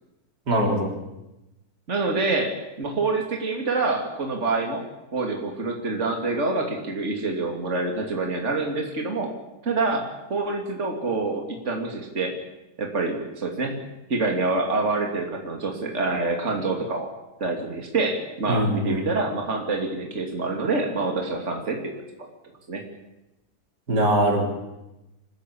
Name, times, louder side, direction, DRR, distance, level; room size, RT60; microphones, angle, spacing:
voice 1, 0.5-0.9 18.5-19.1 23.9-24.5, right 1 dB, 85° right, 1 dB, 4.8 m, -22 dB
voice 2, 1.9-4.8 5.1-9.3 9.6-12.3 12.8-13.8 14.1-17.1 17.4-21.9 22.7-22.8, right 3 dB, 45° right, 2 dB, 3.0 m, -26 dB
25.5 x 15.0 x 8.6 m, 0.97 s
omnidirectional pair, 1.7 m